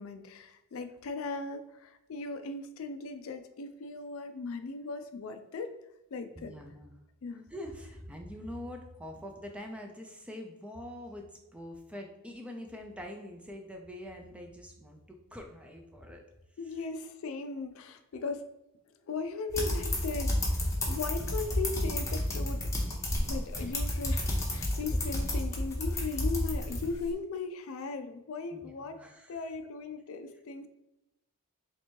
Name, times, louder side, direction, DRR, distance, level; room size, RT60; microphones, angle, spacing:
voice 1, 0.0-5.7 6.1-6.6 7.2-7.5 16.6-18.5 19.0-22.9 23.3-29.0 29.3-30.7, left 4 dB, 65° left, 8 dB, 0.4 m, -38 dB
voice 2, 6.4-6.9 7.5-11.2 11.5-16.2 23.5-23.7 28.5-29.4, left 1 dB, 5° right, 3 dB, 0.4 m, -44 dB
sound 1, 19.5-27.1, left 1 dB, 15° left, 0.8 m, -31 dB
3.3 x 2.9 x 4.4 m, 0.91 s
head